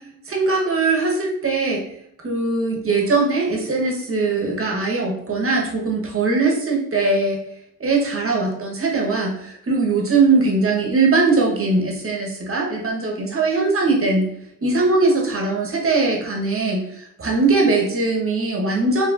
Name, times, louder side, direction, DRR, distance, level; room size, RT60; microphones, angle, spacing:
voice 1, 0.3-1.8 2.2-7.4 7.8-14.3 14.6-19.1, right 3 dB, 40° right, 0 dB, 1.2 m, -20 dB
4.7 x 3.1 x 2.5 m, 0.76 s
cardioid pair, 65°, 33 cm